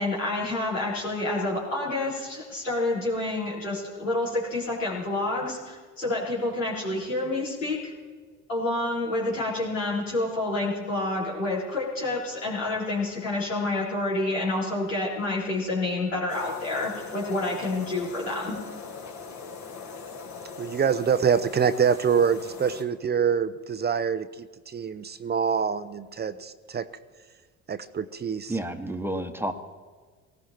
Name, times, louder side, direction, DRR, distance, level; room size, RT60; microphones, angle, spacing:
voice 1, 0.0-7.9 8.5-18.6, left 2 dB, 85° left, -5 dB, 4.1 m, -28 dB
sound 1, 16.3-22.8, left 4 dB, 45° left, 2.3 m, -41 dB
voice 2, 20.6-26.9 27.7-28.6, right 7 dB, 25° right, 13 dB, 0.7 m, -25 dB
voice 3, 28.5-29.5, right 1 dB, 5° right, 6 dB, 1.3 m, -30 dB
18.5 x 15.0 x 4.4 m, 1.5 s
figure-of-eight pair, 60°, 38 cm